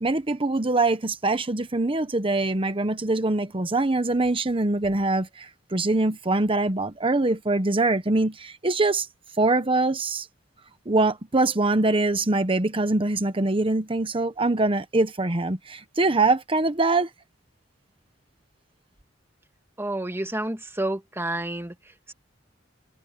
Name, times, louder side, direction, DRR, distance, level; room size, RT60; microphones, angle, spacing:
voice 1, 0.0-9.1 9.4-10.3 10.9-17.1, right 2 dB, 30° right, 1.0 m, -23 dB
voice 2, 19.8-21.7, right 1 dB, 15° right, 2.3 m, -29 dB
head